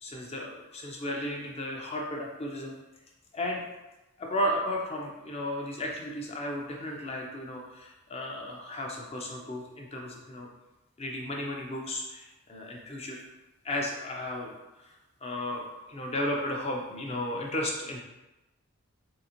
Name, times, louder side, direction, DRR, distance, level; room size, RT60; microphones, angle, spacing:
voice 1, 0.0-2.7 3.3-3.6 4.2-10.5 11.0-13.2 13.6-14.5 14.8-18.0, left 1 dB, 25° left, -1 dB, 0.5 m, -34 dB
3.8 x 3.4 x 2.9 m, 1.0 s
head